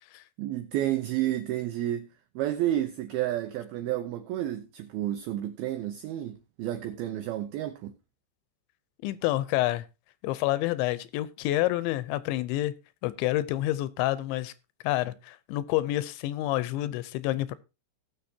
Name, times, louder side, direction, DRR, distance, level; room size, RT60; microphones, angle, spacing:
voice 1, 0.4-2.1 2.4-7.9, right 13 dB, 85° right, 2.2 m, -31 dB
voice 2, 9.0-9.8 10.2-12.7 13.0-14.5 14.8-17.5, left 16 dB, 80° left, 2.9 m, -28 dB
18.0 x 6.7 x 2.8 m
omnidirectional pair, 5.3 m